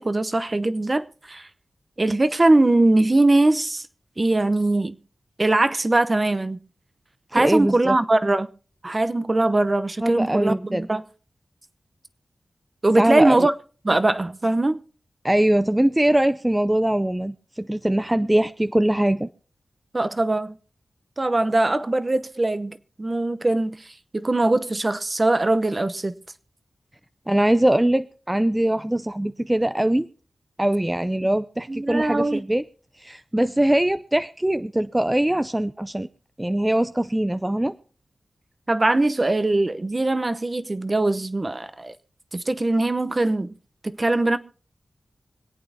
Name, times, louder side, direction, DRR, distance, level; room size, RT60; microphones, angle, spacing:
voice 1, 0.0-1.5 2.0-3.9 4.2-5.0 5.4-6.6 7.3-8.5 8.8-11.0 12.8-13.5 13.8-14.8 19.9-20.6 21.2-26.2 31.7-32.4 38.7-41.9 42.3-43.5 43.8-44.4, right 2 dB, 35° right, 0.8 m, -21 dB
voice 2, 7.4-8.0 10.0-10.9 13.0-13.5 15.2-19.3 27.3-30.1 30.6-32.6 33.0-36.1 36.4-37.7, right 1 dB, 15° right, 0.5 m, -22 dB
25.5 x 8.6 x 2.7 m
cardioid pair, 55°, 0 cm